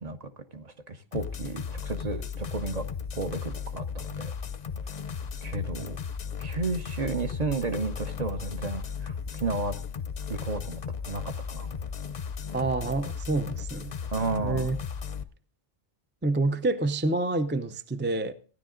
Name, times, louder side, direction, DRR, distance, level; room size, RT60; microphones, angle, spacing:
voice 1, 0.5-2.9 3.1-4.3 5.4-6.0 6.4-9.8 10.3-11.7 14.1-14.7, right 3 dB, 40° right, 0.9 m, -32 dB
sound 1, 1.1-15.2, left 6 dB, 45° left, 0.7 m, -35 dB
voice 2, 12.5-14.0 14.4-14.8 16.2-18.3, right 2 dB, 15° right, 0.4 m, -27 dB
15.5 x 10.5 x 3.8 m
omnidirectional pair, 1.1 m